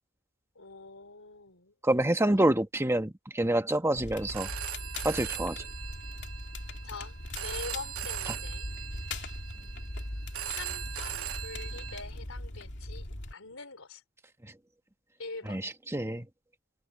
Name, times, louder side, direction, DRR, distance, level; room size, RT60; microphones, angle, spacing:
voice 1, 0.6-1.7 2.3-2.4 6.8-7.2 7.4-8.7 10.4-14.0 15.2-15.6, left 4 dB, 75° left, 4.2 m, -44 dB
voice 2, 1.8-4.5 5.0-5.6 15.5-16.3, right 1 dB, 15° right, 1.5 m, -27 dB
Crackle, 3.9-13.3, left 1 dB, 55° left, 2.6 m, -40 dB
Telephone, 4.2-12.0, right 11 dB, 85° right, 1.3 m, -40 dB
head